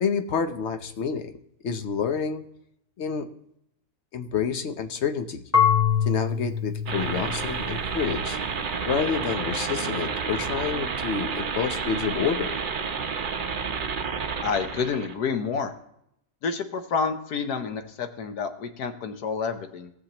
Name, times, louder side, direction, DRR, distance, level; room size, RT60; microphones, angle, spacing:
voice 1, 0.0-1.3 1.6-2.4 3.0-3.3 4.1-5.4 6.1-8.4 8.8-12.5, left 6 dB, 55° left, 8 dB, 0.9 m, -28 dB
Marimba xylophone / Wood, 5.5-8.4, left 8 dB, 15° left, 0.5 m, -25 dB
sound 1, 6.9-15.1, right 5 dB, 45° right, 0.7 m, -30 dB
voice 2, 14.4-15.7 16.4-19.9, left 5 dB, 75° left, 8 dB, 1.4 m, -29 dB
18.0 x 7.1 x 2.9 m, 0.78 s
omnidirectional pair, 1.7 m